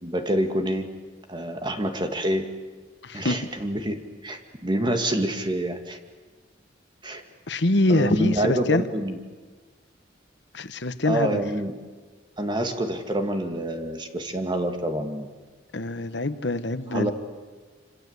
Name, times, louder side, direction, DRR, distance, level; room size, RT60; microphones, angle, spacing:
voice 1, 0.0-0.9 1.3-2.5 3.1-6.0 7.0-7.2 7.9-9.2 11.1-11.7 12.4-15.3 16.9-17.1, right 1 dB, 25° right, 6 dB, 2.2 m, -27 dB
voice 2, 3.0-3.4 7.5-8.8 10.5-11.4 15.7-17.1, left 2 dB, 65° left, 12 dB, 1.2 m, -24 dB
26.5 x 26.5 x 8.2 m, 1.4 s
head